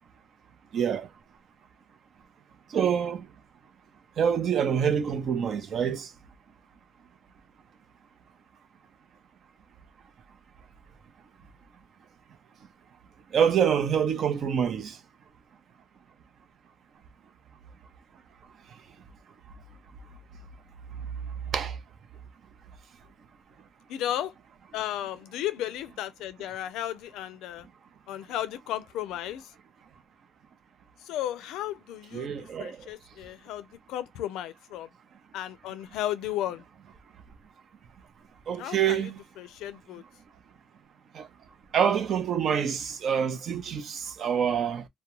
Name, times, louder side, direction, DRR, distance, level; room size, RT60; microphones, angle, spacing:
voice 1, 0.7-1.1 2.7-3.3 4.2-6.1 13.3-15.0 21.5-21.8 32.1-32.9 38.5-39.1 41.1-41.3 41.7-44.9, right 8 dB, 60° right, 0.6 m, -26 dB
voice 2, 23.9-24.3 24.7-27.7 28.1-29.5 31.0-34.9 35.3-36.6 38.6-39.1 39.4-40.0, left 12 dB, 90° left, 0.4 m, -34 dB
2.3 x 2.1 x 2.9 m
cardioid pair, 90°, 0 cm